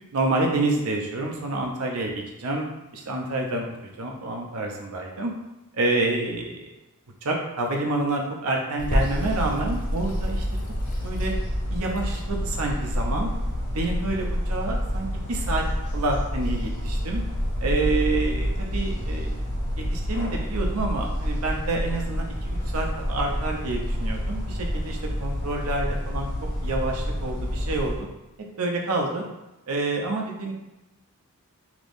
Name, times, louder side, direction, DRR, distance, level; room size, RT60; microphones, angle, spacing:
voice 1, 0.1-2.1 2.4-2.7 2.9-3.7 4.0-5.3 5.7-6.7 7.2-10.4 11.0-11.3 11.7-13.3 13.7-15.6 15.9-17.2 17.6-19.4 19.8-26.3 26.6-28.1 28.6-29.3 29.7-30.5, right 2 dB, 70° right, 1 dB, 0.6 m, -28 dB
sound 1, 8.8-28.0, equal, 75° left, 1.0 m, -28 dB
Water tap faucet / Sink (filling or washing), 8.8-17.8, equal, 35° left, 0.5 m, -36 dB
3.5 x 2.9 x 2.5 m, 1.0 s
head